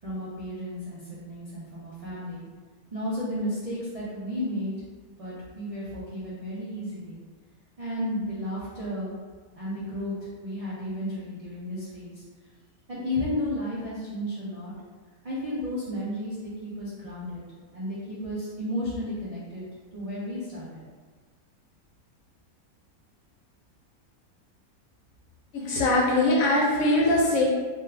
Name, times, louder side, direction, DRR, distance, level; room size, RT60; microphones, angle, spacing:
voice 1, 0.0-2.4 2.9-4.7 5.2-7.2 7.8-9.2 9.5-10.2 10.4-12.2 12.9-14.7 15.2-17.4 17.7-19.6 19.9-20.8, left 1 dB, 70° right, -9 dB, 0.3 m, -33 dB
voice 2, 25.5-27.4, left 1 dB, 70° left, -3 dB, 1.1 m, -22 dB
2.6 x 2.4 x 3.2 m, 1.4 s
omnidirectional pair, 1.5 m